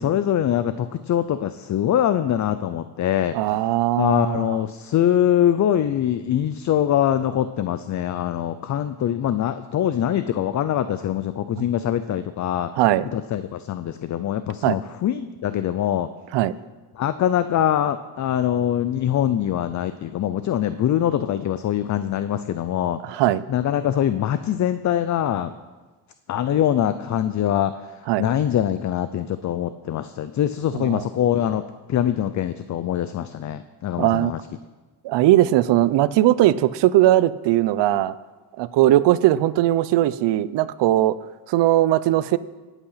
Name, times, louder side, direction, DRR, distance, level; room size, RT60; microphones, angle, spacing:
voice 1, 0.0-3.4 4.0-12.7 13.1-16.1 16.9-23.0 23.5-25.5 26.3-27.7 28.2-34.4, left 10 dB, 45° left, 12 dB, 0.5 m, -23 dB
voice 2, 3.3-4.6 12.8-13.1 14.6-14.8 16.3-16.5 23.0-23.4 28.1-28.2 30.7-31.0 34.0-34.3 35.0-38.1 38.6-41.2 41.5-42.4, right 14 dB, 80° right, 16 dB, 0.7 m, -19 dB
18.5 x 8.2 x 5.7 m, 1.3 s
cardioid pair, 130°, 42 cm